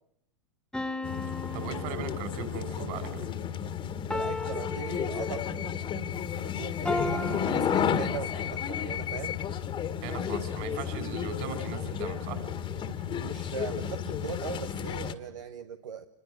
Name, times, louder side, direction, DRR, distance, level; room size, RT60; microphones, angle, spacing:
sound 1, 0.7-2.6 4.1-5.7 6.9-8.6, left 2 dB, 5° left, 1.4 m, -36 dB
sound 2, 1.0-15.1, left 8 dB, 30° left, 1.9 m, -32 dB
voice 1, 1.5-3.3 10.0-12.4, right 7 dB, 55° right, 10 dB, 6.0 m, -38 dB
voice 2, 4.1-9.3 12.7-16.1, right 7 dB, 85° right, 7 dB, 1.3 m, -40 dB
26.5 x 22.0 x 7.8 m, 0.76 s
hypercardioid pair, 100°, 16 cm